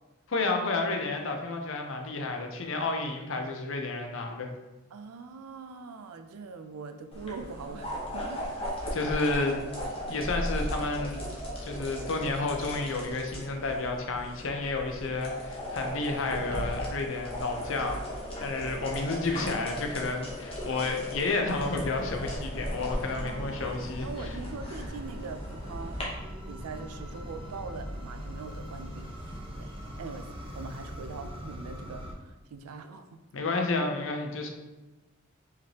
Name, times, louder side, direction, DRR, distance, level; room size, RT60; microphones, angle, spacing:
voice 1, 0.3-4.5 8.9-9.6 10.1-11.2 11.6-18.0 18.4-24.1 33.3-34.5, left 3 dB, 60° left, 3 dB, 0.6 m, -31 dB
voice 2, 4.9-8.4 8.8-9.0 23.1-26.1 26.5-29.1 29.5-29.7 30.0-33.2, right 4 dB, 90° right, 7 dB, 0.4 m, -42 dB
sound 1, 7.1-26.0, equal, 25° left, 0.8 m, -37 dB
sound 2, 10.6-20.6, equal, 60° right, 0.7 m, -48 dB
sound 3, 21.5-32.1, equal, 25° right, 0.7 m, -41 dB
4.8 x 3.2 x 2.9 m, 1.1 s
head